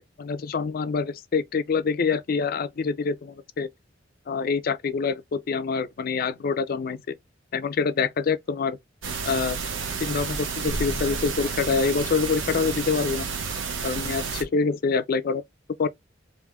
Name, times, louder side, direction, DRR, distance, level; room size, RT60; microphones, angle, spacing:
voice 1, 0.2-3.7 4.3-7.2 7.5-8.8 9.3-9.6 10.0-13.3 13.8-15.4 15.8-15.9, left 5 dB, 50° left, 0.4 m, -26 dB
sound 1, 9.0-14.4, right 5 dB, 80° right, 1.0 m, -30 dB
3.5 x 2.5 x 3.4 m
head